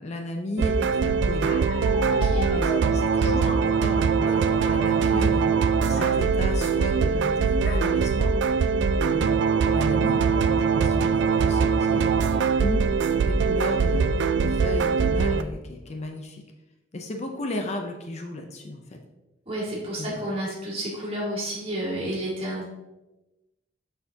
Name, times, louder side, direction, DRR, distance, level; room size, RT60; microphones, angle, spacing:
voice 1, 0.0-1.5 2.5-8.3 9.0-12.4 12.6-12.8 13.2-14.1 14.4-16.4 16.9-18.8 20.0-20.2, left 1 dB, 40° left, 3 dB, 0.6 m, -35 dB
sound 1, 0.6-15.4, right 5 dB, 75° right, 0.3 m, -22 dB
Bark, 1.4-3.6 4.2-5.0 5.3-5.5 5.9-6.2 7.6-7.9 8.5-8.6 8.9-9.3, left 3 dB, 65° left, 0.9 m, -35 dB
voice 2, 2.0-2.5 19.5-22.6, right 1 dB, 35° right, -4 dB, 2.1 m, -31 dB
6.8 x 5.7 x 2.8 m, 1.0 s
head